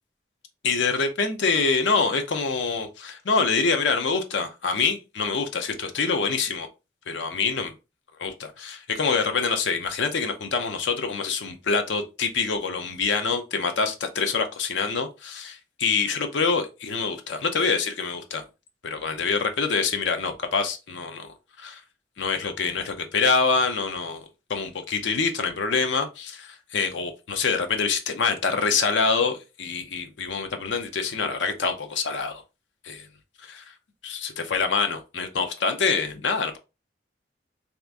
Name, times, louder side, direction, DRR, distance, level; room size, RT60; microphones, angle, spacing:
voice 1, 0.6-6.7 7.1-7.7 8.2-18.4 18.8-21.8 22.2-24.2 24.5-32.4 32.8-33.1 33.4-33.6 34.0-36.6, left 4 dB, 80° left, 0.6 m, -25 dB
2.8 x 2.5 x 3.4 m
head